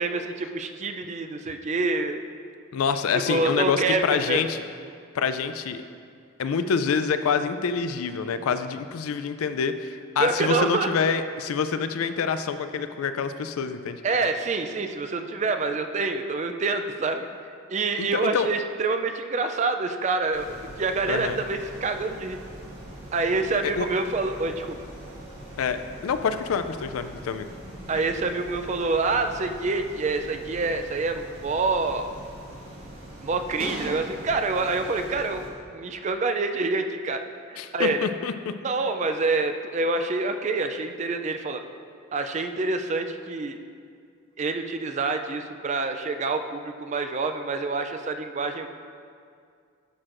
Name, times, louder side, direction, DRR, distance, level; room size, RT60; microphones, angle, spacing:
voice 1, 0.0-2.2 3.3-4.4 10.2-10.9 14.0-17.3 17.7-22.4 23.1-24.8 27.9-32.1 33.2-35.5 35.7-37.2 37.5-38.0 38.6-41.6 42.1-43.6 44.4-48.7, right 3 dB, 35° right, 7 dB, 0.3 m, -27 dB
voice 2, 2.7-4.6 5.1-5.8 6.4-14.0 18.0-18.5 21.1-21.4 23.6-23.9 25.6-27.5 37.6-38.5, left 6 dB, 85° left, 10 dB, 0.4 m, -26 dB
sound 1, 20.3-35.5, right 1 dB, 75° right, 1.4 m, -41 dB
11.5 x 6.3 x 2.5 m, 2.3 s
head